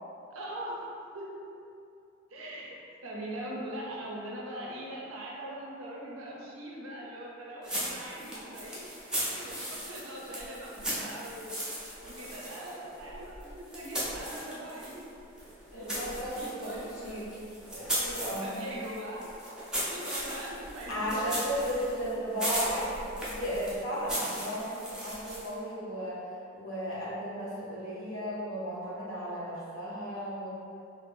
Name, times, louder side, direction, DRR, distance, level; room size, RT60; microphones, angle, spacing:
voice 1, 0.3-0.9 1.1-1.4 2.3-2.8 3.0-9.0 9.3-11.5 12.0-15.0 15.7-17.2 18.2-19.3 19.7-21.7, right 1 dB, 90° right, -3 dB, 0.6 m, -41 dB
sound 1, 7.6-15.0 15.4-25.6, equal, 5° right, 0.4 m, -37 dB
voice 2, 15.7-17.3 17.7-18.5 20.9-26.2 26.5-30.5, equal, 85° left, -8 dB, 1.0 m, -35 dB
2.6 x 2.4 x 3.3 m, 2.6 s
head